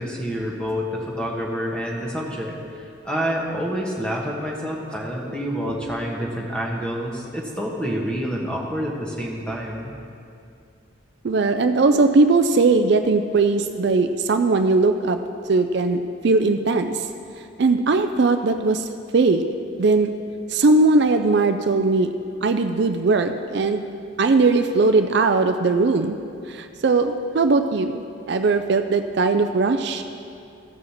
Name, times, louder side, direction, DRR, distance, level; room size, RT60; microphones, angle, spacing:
voice 1, 0.0-9.9, equal, 5° left, -2 dB, 1.2 m, -28 dB
voice 2, 11.2-15.2 15.5-17.1 17.6-18.9 19.1-19.4 19.8-20.1 20.5-22.1 22.4-23.8 24.2-26.2 26.5-30.0, right 3 dB, 55° right, 7 dB, 0.4 m, -19 dB
14.5 x 4.9 x 7.2 m, 2.5 s
head